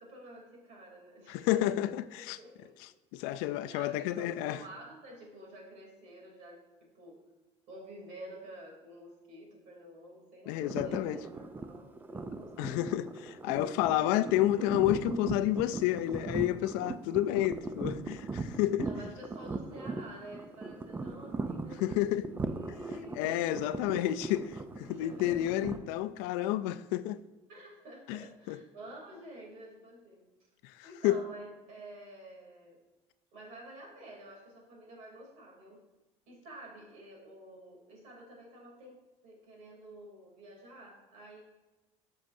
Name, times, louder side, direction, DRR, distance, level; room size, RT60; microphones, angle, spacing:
voice 1, 0.0-1.5 2.2-2.7 3.7-7.2 7.7-13.0 18.8-23.7 24.1-24.2 24.9-25.7 27.5-30.3 30.8-32.8 33.3-35.8 36.3-41.4, right 1 dB, 65° right, 3.0 m, -50 dB
voice 2, 1.3-2.4 3.1-4.6 10.5-11.2 12.6-18.9 21.8-22.3 23.2-27.2 28.1-28.2 28.5-28.6 30.6-30.7 31.0-31.2, left 14 dB, 85° left, 0.4 m, -30 dB
sound 1, 10.6-25.8, right 3 dB, 15° right, 0.5 m, -39 dB
12.5 x 6.3 x 2.6 m
cardioid pair, 130°, 13 cm